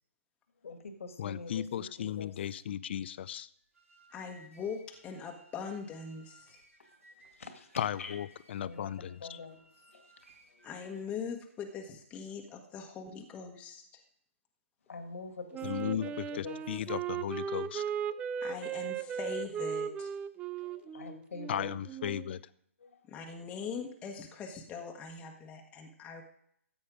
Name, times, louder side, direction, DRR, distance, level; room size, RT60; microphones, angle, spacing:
voice 1, 0.6-2.3 7.3-8.2 8.6-9.6 9.9-10.1 10.5-10.7 14.9-16.6 20.6-21.7 22.8-23.0, left 4 dB, 70° left, 6 dB, 2.0 m, -45 dB
voice 2, 1.2-3.5 7.8-9.4 15.6-16.1 16.3-17.8 21.5-22.4, left 10 dB, 50° left, 18 dB, 0.6 m, -36 dB
sound 1, 3.6-11.2, right 1 dB, 85° right, 5.1 m, -61 dB
voice 3, 4.1-6.6 10.6-14.0 18.4-20.1 23.1-26.2, left 5 dB, 15° left, 1 dB, 1.4 m, -41 dB
Wind instrument woodwind instrument, 15.5-22.3, right 8 dB, 15° right, 0.4 m, -37 dB
14.0 x 8.7 x 5.0 m, 0.71 s
figure-of-eight pair, 135°, 7 cm